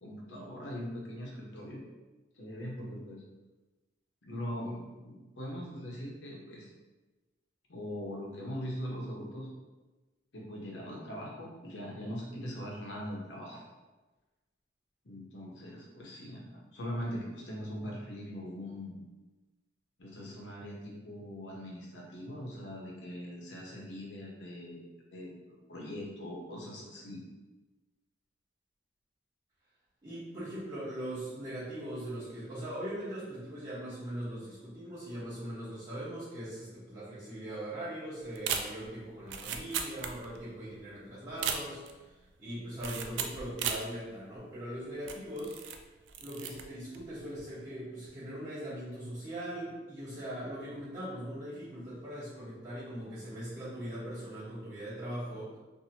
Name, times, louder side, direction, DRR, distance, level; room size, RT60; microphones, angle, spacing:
voice 1, 0.0-1.8 2.4-3.2 4.2-6.7 7.7-9.5 10.3-13.7 15.0-19.0 20.0-27.3, equal, 75° left, -3 dB, 0.8 m, -41 dB
voice 2, 30.0-42.1 42.4-45.5 46.2-55.6, right 1 dB, 25° right, -14 dB, 1.0 m, -40 dB
sound 1, 38.3-40.5 40.8-40.9 41.3-42.0 42.8-43.9 44.4-44.5 45.0-45.8 46.1-46.6 46.9-47.2, right 7 dB, 70° right, 0.3 m, -36 dB
2.8 x 2.6 x 2.8 m, 1.2 s
head